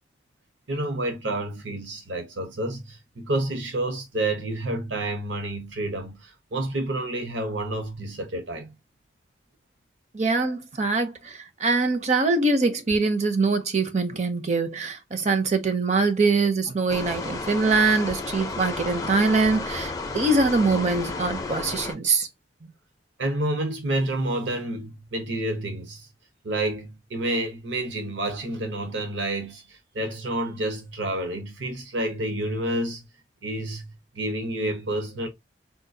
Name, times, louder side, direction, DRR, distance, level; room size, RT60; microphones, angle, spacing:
voice 1, 0.7-8.7 23.2-26.1 26.4-33.1 33.4-35.3, right 1 dB, 75° right, 0.9 m, -29 dB
voice 2, 10.1-22.3, right 3 dB, 35° right, 0.5 m, -23 dB
sound 1, 16.9-21.9, left 3 dB, 20° left, 0.4 m, -32 dB
3.7 x 2.3 x 2.6 m
head